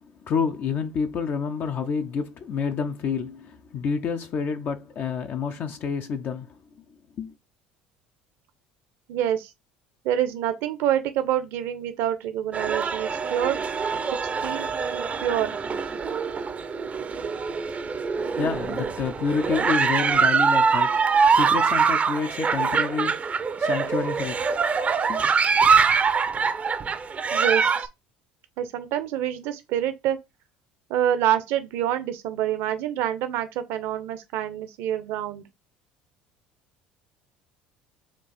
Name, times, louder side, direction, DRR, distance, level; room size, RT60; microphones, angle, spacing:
voice 1, 0.0-6.5 7.2-7.3 18.4-23.2 23.6-24.6 25.1-25.2, left 6 dB, 50° left, 0.6 m, -29 dB
voice 2, 9.1-9.5 10.0-13.6 14.4-15.6 27.3-27.9 28.6-30.2 30.9-35.4, right 11 dB, 65° right, 0.8 m, -27 dB
sound 1, 12.5-27.9, right 5 dB, 30° right, 0.6 m, -24 dB
4.5 x 2.4 x 4.2 m
hypercardioid pair, 65°, 4 cm